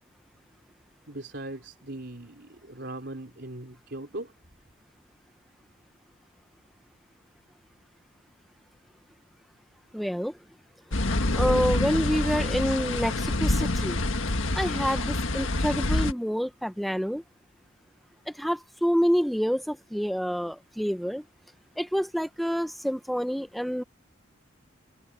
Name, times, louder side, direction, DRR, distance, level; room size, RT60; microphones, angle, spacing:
voice 1, 1.1-4.3, right 2 dB, 60° right, 3.8 m, -39 dB
voice 2, 9.9-10.3 11.3-14.0 14.5-17.2 18.4-21.2 21.8-23.8, equal, ahead, 0.8 m, -27 dB
sound 1, 10.9-16.1, left 2 dB, 85° left, 1.7 m, -26 dB
head